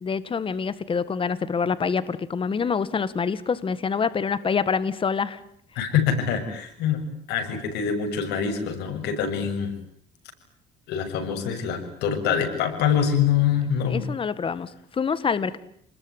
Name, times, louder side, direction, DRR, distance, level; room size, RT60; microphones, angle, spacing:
voice 1, 0.0-5.4 13.9-15.6, left 5 dB, 30° left, 15 dB, 1.8 m, -26 dB
voice 2, 5.8-9.7 10.9-14.0, left 7 dB, 85° left, 6 dB, 6.9 m, -25 dB
29.5 x 20.5 x 9.8 m, 0.65 s
cardioid pair, 110°, 17 cm